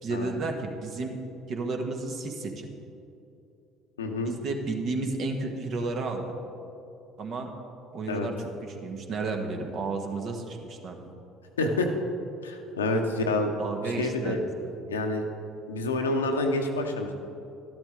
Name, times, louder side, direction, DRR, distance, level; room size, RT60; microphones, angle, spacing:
voice 1, 0.0-1.1 1.5-2.7 4.2-6.3 7.2-7.5 7.9-8.3 8.6-11.1 13.6-14.7, right 3 dB, 50° right, 3 dB, 1.5 m, -32 dB
voice 2, 4.0-4.3 8.1-8.3 11.6-11.9 12.4-13.5 14.0-14.4 14.9-15.3 15.7-17.1, left 2 dB, 80° left, 4 dB, 0.9 m, -28 dB
12.5 x 12.0 x 3.7 m, 2.7 s
figure-of-eight pair, 60°, 0 cm